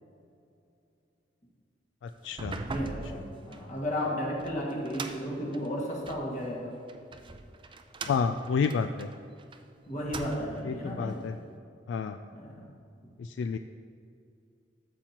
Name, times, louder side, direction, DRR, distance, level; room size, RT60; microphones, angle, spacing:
voice 1, 2.0-2.6 8.1-9.1 10.6-11.4 11.9-12.2 13.2-13.6, left 5 dB, 75° left, 8 dB, 0.3 m, -30 dB
sound 1, 2.2-6.3 6.9-9.6 9.9-10.7, right 3 dB, 30° right, 0.5 m, -41 dB
voice 2, 2.6-6.7 9.9-11.3 12.3-12.6, equal, 45° left, -3 dB, 1.9 m, -34 dB
13.0 x 7.3 x 2.9 m, 2.4 s
head